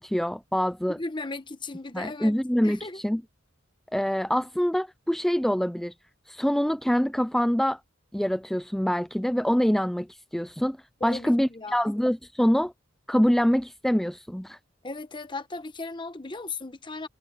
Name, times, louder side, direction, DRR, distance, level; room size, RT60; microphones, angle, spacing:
voice 1, 0.0-1.0 1.9-3.2 3.9-5.9 6.3-7.8 8.1-10.8 11.0-12.7 13.1-14.6, equal, ahead, 0.3 m, -25 dB
voice 2, 1.0-2.3 2.6-3.0 11.0-12.0 14.8-17.1, left 3 dB, 25° left, 1.1 m, -36 dB
head